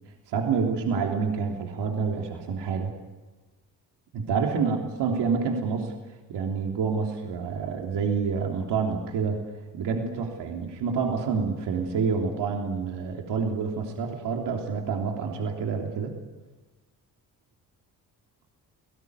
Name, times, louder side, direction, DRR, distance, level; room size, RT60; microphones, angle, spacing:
voice 1, 0.3-2.9 4.1-5.9 6.3-9.4 9.7-16.1, right 5 dB, 75° right, 1 dB, 3.4 m, -28 dB
29.5 x 18.0 x 9.6 m, 1.2 s
supercardioid pair, 60°, 41 cm